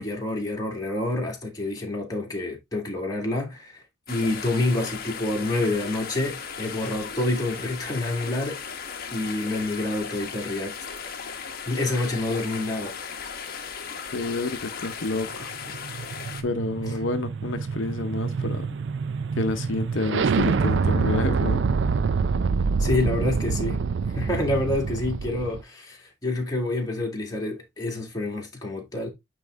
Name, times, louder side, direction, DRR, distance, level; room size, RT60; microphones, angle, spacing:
voice 1, 0.0-8.6 9.1-10.8 11.7-13.0 22.8-23.8 24.1-29.1, left 2 dB, 20° left, 2.1 m, -28 dB
sound 1, 4.1-16.4, left 6 dB, 50° left, 1.0 m, -36 dB
voice 2, 14.1-15.5 16.4-18.7 19.3-21.6, left 2 dB, 75° left, 0.7 m, -29 dB
sound 2, 15.4-25.6, right 5 dB, 65° right, 0.4 m, -26 dB
9.1 x 3.2 x 3.5 m
head